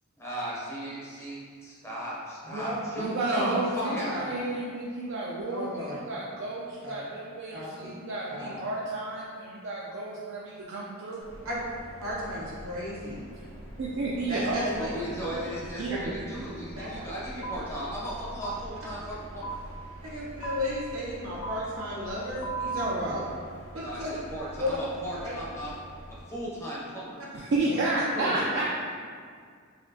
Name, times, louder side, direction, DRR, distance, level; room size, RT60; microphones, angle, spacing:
voice 1, 0.2-1.4 1.6-4.2 14.8-19.6 23.8-25.7 26.3-27.2, equal, 10° left, -6 dB, 0.6 m, -37 dB
voice 2, 3.0-11.2 13.4-13.5 13.8-14.9 15.8-16.1 27.3-28.6, right 2 dB, 55° right, -5 dB, 0.4 m, -31 dB
voice 3, 3.8-4.3 5.5-6.0 6.8-6.9 7.5-7.6 8.3-8.6 11.4-11.6 12.0-13.2 14.3-14.9 15.2-15.5 16.7-16.9 20.0-23.3 23.7-24.2 24.6-24.8 25.2-25.3 27.7-27.8 28.1-28.4, left 1 dB, 75° right, -6 dB, 1.1 m, -34 dB
sound 1, 11.2-26.2, equal, 80° left, 0.9 m, -45 dB
sound 2, 17.4-17.6 18.4-18.6 19.4-19.5 20.4-20.5 21.4-21.5 22.4-22.9, right 4 dB, 60° left, 0.4 m, -34 dB
4.1 x 2.8 x 2.7 m, 2.1 s
head